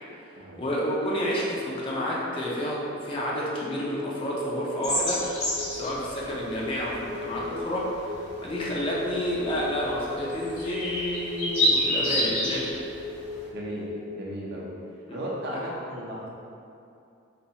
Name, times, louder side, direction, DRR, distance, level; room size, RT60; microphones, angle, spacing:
voice 1, 0.6-5.2 5.7-7.9 8.4-12.8 15.1-15.2 15.5-15.6, equal, 25° left, -5 dB, 0.4 m, -30 dB
sound 1, 2.2-14.2, left 2 dB, 50° left, 0.8 m, -39 dB
sound 2, 4.8-13.5, left 1 dB, 80° left, 1.1 m, -30 dB
voice 2, 13.5-14.7 15.1-16.3, right 1 dB, 50° right, -5 dB, 0.6 m, -35 dB
4.2 x 2.3 x 2.7 m, 2.6 s
head